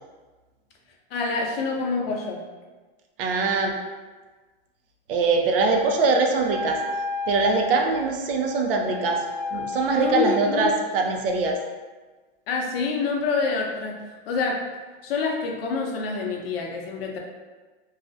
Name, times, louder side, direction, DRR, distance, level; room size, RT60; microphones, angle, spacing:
voice 1, 1.1-2.4 10.0-10.7 12.5-14.0 14.3-14.6 15.0-17.2, left 4 dB, 80° left, 1 dB, 0.6 m, -26 dB
voice 2, 3.2-3.7 5.1-6.8 7.3-9.2 9.5-11.6, right 3 dB, 70° right, 2 dB, 0.5 m, -22 dB
Wind instrument woodwind instrument, 6.4-10.9, left 2 dB, 40° right, 1.0 m, -33 dB
2.3 x 2.0 x 2.6 m, 1.3 s
supercardioid pair, 180°, 29 cm